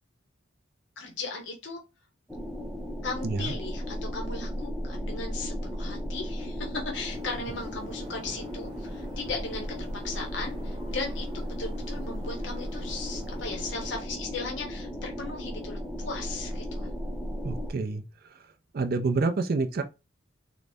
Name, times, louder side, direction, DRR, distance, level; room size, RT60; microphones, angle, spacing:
voice 1, 1.0-1.8 3.0-16.9, left 3 dB, 65° left, 0.8 m, -37 dB
sound 1, 2.3-17.7, equal, ahead, 0.5 m, -35 dB
sound 2, 6.9-14.0, right 1 dB, 25° right, 0.9 m, -50 dB
voice 2, 17.4-18.0 18.7-19.8, right 3 dB, 50° right, 0.4 m, -27 dB
3.8 x 2.0 x 3.4 m
head